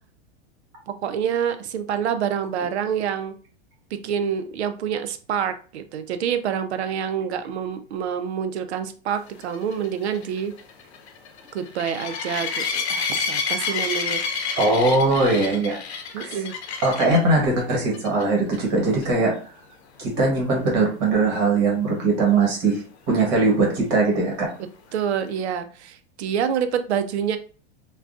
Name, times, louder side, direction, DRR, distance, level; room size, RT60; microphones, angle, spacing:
voice 1, 0.9-3.4 3.9-10.5 11.5-14.5 16.1-16.6 24.9-27.4, right 8 dB, 90° right, 10 dB, 0.5 m, -27 dB
sound 1, 9.4-17.3 17.9-18.2 18.5-18.6 19.0-19.1 22.7-22.8, left 5 dB, 85° left, 0.7 m, -29 dB
voice 2, 14.6-15.8 16.2-16.4 16.8-19.4 20.0-22.8 23.1-24.5, right 3 dB, 45° right, -1 dB, 1.3 m, -20 dB
3.5 x 2.3 x 2.5 m, 0.38 s
supercardioid pair, 135°, 32 cm